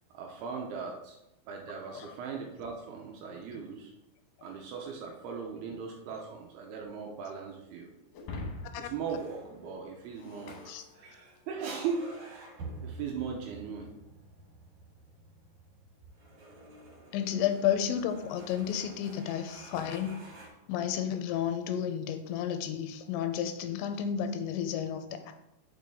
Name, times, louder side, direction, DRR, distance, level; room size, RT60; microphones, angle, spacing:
voice 1, 0.1-1.2 1.5-3.9 4.4-7.9 8.8-12.2 12.8-13.9, right 6 dB, 80° right, 1 dB, 2.5 m, -38 dB
Shatter, 8.1-11.6, left 2 dB, 70° left, 2.3 m, -45 dB
sound 1, 9.0-20.5, right 3 dB, 50° right, 2.4 m, -50 dB
voice 2, 17.1-20.2 20.7-25.3, left 9 dB, 90° left, 8 dB, 2.9 m, -32 dB
6.4 x 6.3 x 3.5 m, 0.89 s
omnidirectional pair, 5.2 m